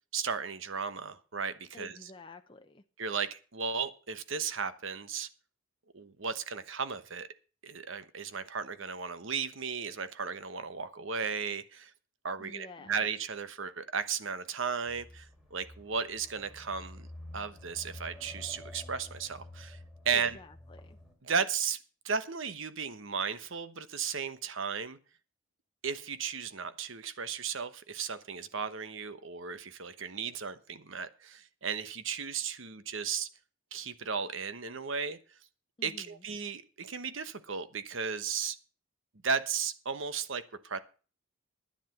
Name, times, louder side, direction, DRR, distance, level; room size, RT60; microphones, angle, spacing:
voice 1, 0.1-2.1 3.0-5.3 5.9-7.3 7.6-11.9 12.2-17.1 17.3-19.8 20.0-20.4 21.2-21.8 22.0-25.0 25.8-33.3 33.7-35.2 35.8-38.6 39.2-40.8, right 6 dB, 65° right, 1.1 m, -35 dB
voice 2, 1.7-2.8 12.4-12.9 20.1-21.0 35.8-36.1, left 2 dB, 25° left, 0.7 m, -49 dB
sound 1, 14.9-21.1, left 1 dB, 5° right, 2.8 m, -49 dB
11.0 x 10.0 x 5.9 m
head